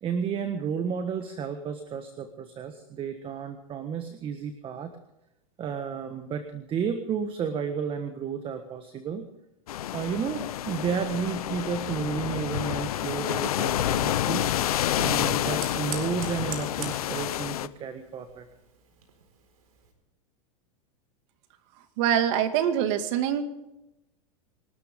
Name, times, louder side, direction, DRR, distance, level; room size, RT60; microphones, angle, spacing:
voice 1, 0.0-4.9 5.6-9.2 9.9-18.4, right 7 dB, 30° right, 8 dB, 1.5 m, -32 dB
sound 1, 9.7-17.7, left 12 dB, 90° left, 0.8 m, -29 dB
Fire, 12.7-19.9, right 6 dB, 90° right, 4.4 m, -45 dB
voice 2, 22.0-23.4, right 9 dB, 60° right, 7 dB, 2.3 m, -24 dB
26.0 x 13.0 x 3.7 m, 0.89 s
supercardioid pair, 125°, 18 cm